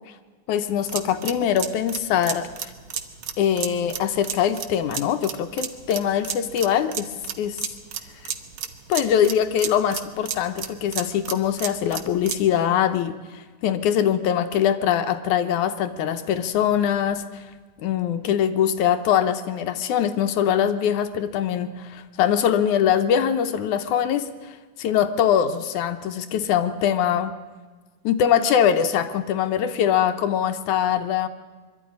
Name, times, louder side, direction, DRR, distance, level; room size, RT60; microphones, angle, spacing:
voice 1, 0.5-2.5 3.4-7.1 7.4-7.6 8.9-17.2 17.8-27.3 28.0-31.3, left 9 dB, 75° left, 10 dB, 2.2 m, -22 dB
sound 1, 0.7-12.5, right 8 dB, 65° right, 1.2 m, -33 dB
22.5 x 12.5 x 9.8 m, 1.4 s
omnidirectional pair, 3.7 m